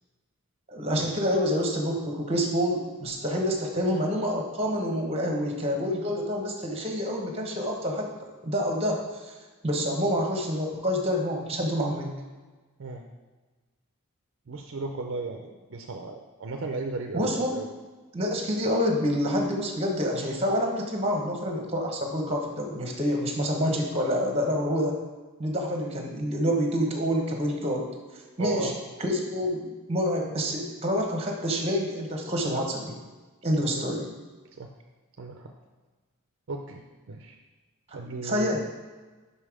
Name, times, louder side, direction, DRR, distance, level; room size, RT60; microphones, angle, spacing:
voice 1, 0.7-8.1 8.4-9.3 9.6-12.1 17.1-17.6 18.1-25.0 25.4-27.8 28.4-28.7 29.0-32.9 33.4-34.1 38.2-38.6, equal, 30° right, 1 dB, 1.1 m, -27 dB
voice 2, 14.5-17.7 28.4-28.7 33.6-33.8 34.6-34.7 35.2-35.5 36.5-37.4 37.9-38.6, right 3 dB, 60° right, 3 dB, 0.5 m, -35 dB
5.7 x 5.5 x 4.8 m, 1.3 s
head